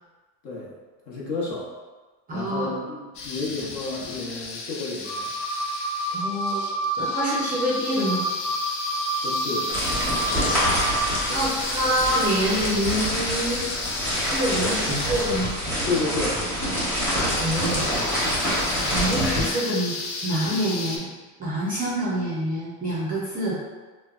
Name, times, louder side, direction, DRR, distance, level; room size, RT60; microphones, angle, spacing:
voice 1, 0.4-0.8 1.1-1.8 2.3-5.3 9.2-9.8 14.8-15.0 15.9-16.5, left 3 dB, 50° left, -5 dB, 0.9 m, -31 dB
voice 2, 2.3-2.7 6.1-6.7 7.0-8.3 10.6-10.7 11.3-13.7 14.2-15.6 17.4-17.8 18.9-20.0 20.2-21.1 21.4-23.6, equal, 20° right, -7 dB, 0.5 m, -26 dB
sound 1, 3.1-21.0, left 3 dB, 90° left, 0.6 m, -34 dB
sound 2, 5.0-11.0, right 1 dB, 30° left, 0.5 m, -29 dB
sound 3, 9.7-19.5, equal, 5° left, 0.9 m, -26 dB
3.2 x 2.1 x 2.3 m, 1.3 s
supercardioid pair, 135°, 43 cm